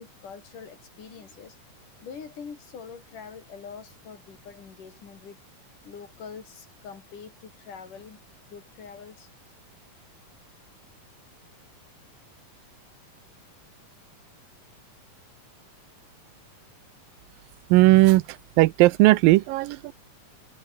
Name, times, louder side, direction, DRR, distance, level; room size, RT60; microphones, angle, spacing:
voice 1, 0.0-1.6 2.0-5.4 5.9-8.2 8.5-9.3, left 6 dB, 65° left, 5.4 m, -44 dB
voice 2, 17.7-19.9, right 19 dB, 90° right, 2.5 m, -18 dB
omnidirectional pair, 3.9 m